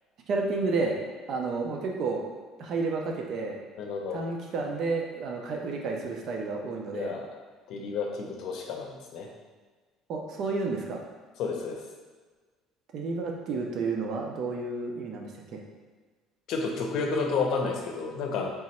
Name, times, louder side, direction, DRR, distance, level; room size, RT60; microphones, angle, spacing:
voice 1, 0.3-1.0 1.3-2.2 2.6-3.6 4.1-7.1 10.1-11.0 12.9-15.6, right 3 dB, 50° right, 1 dB, 0.6 m, -31 dB
voice 2, 3.8-4.2 6.9-7.4 7.7-9.3 11.4-11.8 16.5-18.5, left 4 dB, 60° left, 1 dB, 0.7 m, -31 dB
3.5 x 3.0 x 4.3 m, 1.4 s
cardioid pair, 145°, 0 cm